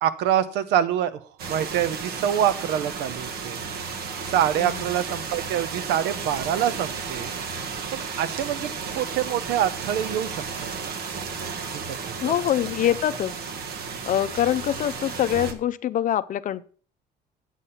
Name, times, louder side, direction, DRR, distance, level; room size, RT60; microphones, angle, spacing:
voice 1, 0.0-1.2 1.5-3.6 4.3-7.3 7.9-10.9 12.0-12.3, right 10 dB, 90° right, 14 dB, 0.8 m, -25 dB
sound 1, 1.4-15.5, right 5 dB, 65° right, 1.4 m, -33 dB
voice 2, 4.6-4.9 12.2-13.5 14.1-16.6, left 11 dB, 50° left, 15 dB, 0.6 m, -24 dB
8.3 x 6.8 x 5.6 m, 0.42 s
cardioid pair, 110°, 17 cm